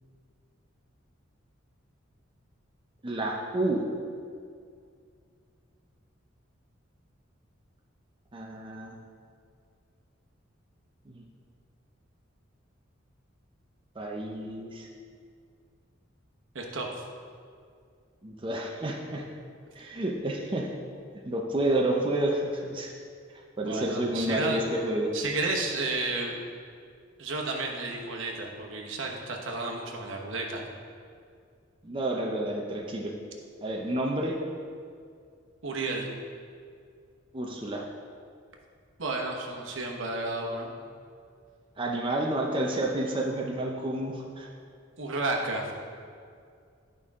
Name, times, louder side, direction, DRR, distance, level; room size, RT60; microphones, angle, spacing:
voice 1, 3.0-3.8 8.3-9.0 11.1-11.2 14.0-14.9 18.2-19.3 19.7-20.7 21.3-22.9 23.3-25.1 31.8-33.1 33.6-34.4 37.3-37.9 41.8-44.5, right 1 dB, 25° right, -1 dB, 0.6 m, -30 dB
voice 2, 16.5-16.9 23.6-24.6 25.1-26.4 27.2-30.6 35.6-36.1 39.0-40.7 45.0-45.7, right 3 dB, 70° right, 0 dB, 1.0 m, -32 dB
11.0 x 5.4 x 3.6 m, 2.3 s
head